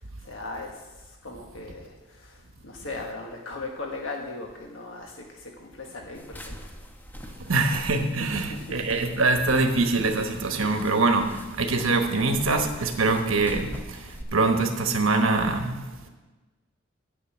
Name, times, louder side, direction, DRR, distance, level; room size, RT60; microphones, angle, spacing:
voice 1, 0.2-0.8 1.2-6.7 8.3-8.9, left 3 dB, 70° left, 1 dB, 1.4 m, -38 dB
sound 1, 6.1-14.2, equal, 10° left, 0.9 m, -42 dB
voice 2, 7.2-16.1, right 3 dB, 75° right, 5 dB, 1.2 m, -24 dB
10.5 x 6.8 x 8.7 m, 1.2 s
head